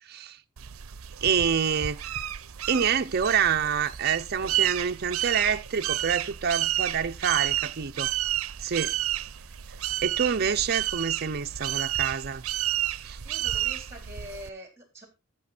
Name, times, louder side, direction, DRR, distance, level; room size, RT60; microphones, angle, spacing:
voice 1, 0.1-0.4 1.2-2.0 2.7-8.1 8.6-8.9 10.0-12.4 13.0-13.2, right 7 dB, 50° right, 0.6 m, -27 dB
sound 1, 0.6-14.5, right 13 dB, 90° right, 0.6 m, -31 dB
sound 2, 2.2-11.3, right 2 dB, 30° left, 5.7 m, -56 dB
voice 2, 13.2-15.1, equal, 15° right, 3.8 m, -44 dB
13.5 x 6.1 x 4.3 m
head